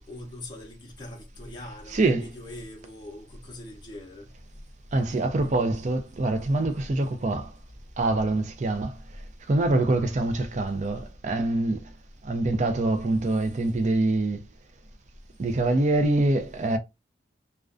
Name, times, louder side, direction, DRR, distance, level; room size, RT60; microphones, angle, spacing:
voice 1, 0.1-4.3, left 1 dB, 25° left, 0.5 m, -42 dB
voice 2, 1.9-2.3 4.9-7.5 8.0-9.0 9.5-11.9 12.2-14.4 15.4-16.8, right 2 dB, 40° right, 0.4 m, -25 dB
2.4 x 2.1 x 2.4 m
head